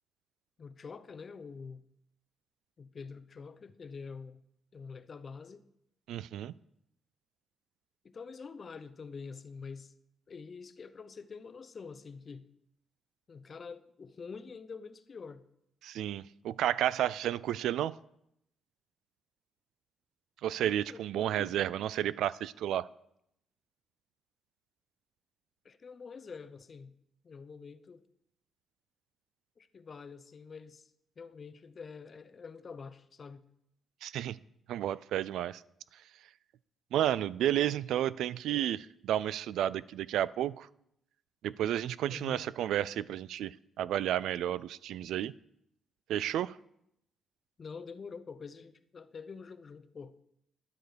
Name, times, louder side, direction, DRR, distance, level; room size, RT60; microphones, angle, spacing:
voice 1, 0.6-1.8 2.8-4.4 4.7-5.6 8.0-9.9 10.3-12.5 13.3-15.4 20.9-21.6 25.6-26.9 27.2-28.0 29.6-30.9 31.2-33.4 42.1-42.5 47.6-50.2, left 5 dB, 40° left, 0.8 m, -46 dB
voice 2, 6.1-6.5 15.8-17.9 20.4-22.9 34.0-34.4 34.7-35.6 36.9-40.7 41.4-45.3 46.1-46.6, right 11 dB, 85° right, 0.4 m, -31 dB
12.5 x 10.5 x 5.1 m
cardioid pair, 90°, 0 cm